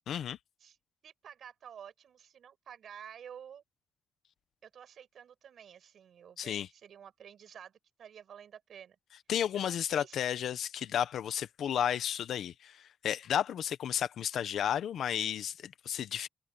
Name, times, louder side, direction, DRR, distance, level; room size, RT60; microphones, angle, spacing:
voice 1, 0.1-0.4 6.4-6.7 9.3-16.3, left 9 dB, 80° left, 1.0 m, -33 dB
voice 2, 1.0-3.6 4.6-9.0 9.5-10.2, right 8 dB, 65° right, 5.4 m, -51 dB
wide cardioid pair, 165°, 0 cm